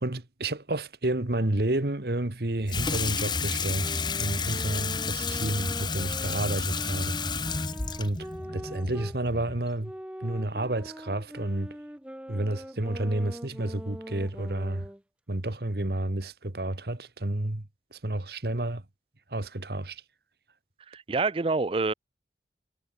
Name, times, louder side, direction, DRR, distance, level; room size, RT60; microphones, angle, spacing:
voice 1, 0.0-7.2 8.0-9.9 10.2-11.8 12.3-14.9 15.3-18.8 19.3-20.0, right 1 dB, 60° right, 1.6 m, -30 dB
Water tap faucet / Sink (filling or washing), 2.7-9.7, left 5 dB, 25° left, 1.0 m, -31 dB
sound 1, 3.7-9.2 9.8-15.0, equal, 5° right, 0.8 m, -42 dB
voice 2, 20.9-21.9, right 3 dB, 30° right, 0.4 m, -27 dB
head